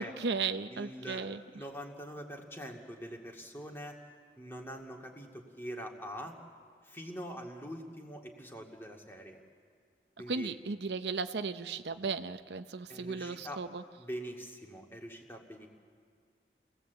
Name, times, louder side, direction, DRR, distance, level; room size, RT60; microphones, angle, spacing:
voice 1, 0.0-1.4 10.3-13.8, right 4 dB, 75° right, 10 dB, 0.7 m, -35 dB
voice 2, 0.7-1.3 1.5-4.0 4.4-6.4 6.8-9.4 10.2-10.5 12.9-13.6 14.0-15.7, equal, 15° left, 1 dB, 2.2 m, -44 dB
29.5 x 18.0 x 8.1 m, 2.1 s
head